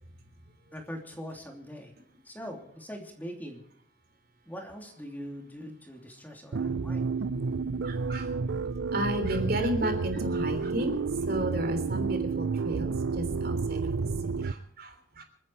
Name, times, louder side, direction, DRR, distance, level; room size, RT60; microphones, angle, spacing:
voice 1, 0.7-1.9 2.2-3.6 4.5-7.1, equal, 10° left, 2 dB, 3.0 m, -42 dB
sound 1, 6.5-14.5, right 4 dB, 75° right, 0.6 m, -30 dB
voice 2, 7.8-8.3 8.6-15.2, right 1 dB, 50° right, 6 dB, 3.3 m, -33 dB
29.0 x 10.0 x 4.7 m, 0.66 s
head